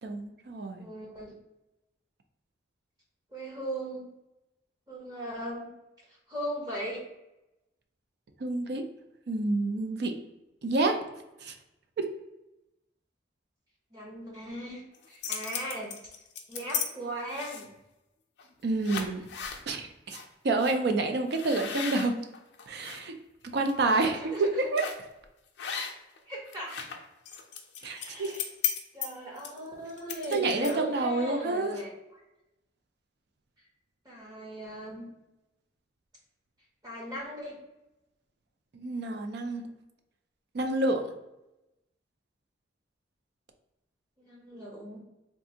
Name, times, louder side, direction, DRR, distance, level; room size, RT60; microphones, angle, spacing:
voice 1, 0.0-0.9 8.4-8.8 9.3-10.1 10.6-11.0 11.4-11.5 12.0-12.1 18.6-19.2 19.7-20.2 20.4-22.1 22.7-23.1 23.5-24.8 27.8-28.3 30.3-31.7 38.7-39.7 40.5-41.1, right 2 dB, 55° right, 5 dB, 0.4 m, -28 dB
voice 2, 0.8-1.3 3.3-4.1 4.9-5.7 6.3-7.0 13.9-15.9 16.5-17.7 23.9-24.7 26.3-26.8 27.9-28.4 28.9-31.9 34.0-35.1 36.8-37.6 44.2-45.0, right 1 dB, 20° right, -3 dB, 0.7 m, -38 dB
sound 1, 14.9-16.9 17.3-17.8 18.4-18.5 18.8-19.6 20.1-20.2 20.6-20.8 21.3-23.0 23.5-23.7 24.8-25.1 25.6-26.2 26.5-30.9, left 8 dB, 60° left, 0.4 m, -36 dB
3.5 x 2.5 x 2.7 m, 0.95 s
head